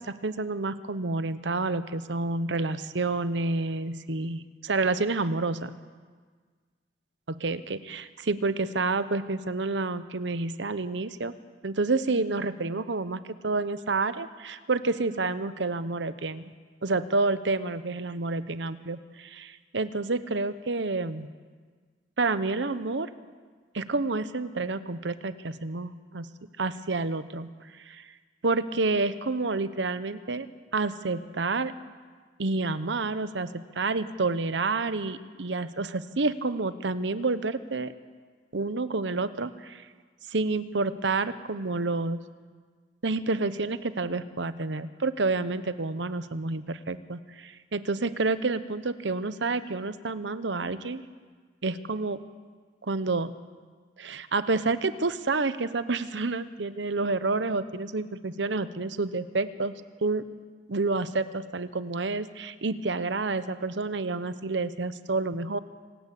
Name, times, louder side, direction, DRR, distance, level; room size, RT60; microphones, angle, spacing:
voice 1, 0.2-5.7 7.3-11.3 11.6-16.5 16.8-21.3 22.2-23.1 23.7-26.3 26.6-27.5 27.7-28.1 28.4-30.5 30.7-31.7 32.4-33.5 33.8-37.9 38.5-39.8 40.3-42.2 43.0-51.0 51.6-52.2 52.8-53.3 54.0-59.7 60.0-60.2 60.7-65.6, right 3 dB, 85° right, 13 dB, 0.9 m, -29 dB
26.0 x 13.5 x 8.4 m, 1.5 s
head